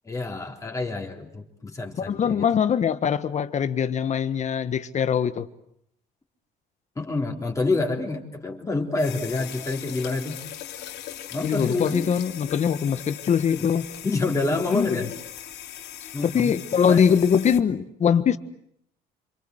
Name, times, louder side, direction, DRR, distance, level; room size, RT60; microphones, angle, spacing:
voice 1, 0.1-2.5 7.0-10.4 10.7-10.9 11.3-12.1 13.6-13.7 14.0-15.1 16.1-16.5 16.9-17.1, left 3 dB, 20° left, 3.9 m, -28 dB
voice 2, 2.0-5.5 11.4-13.9 14.7-15.1 16.2-18.4, left 7 dB, 45° left, 1.5 m, -22 dB
sound 1, 8.9-17.6, left 11 dB, 80° left, 2.9 m, -40 dB
28.0 x 25.5 x 8.0 m
cardioid pair, 110°, 17 cm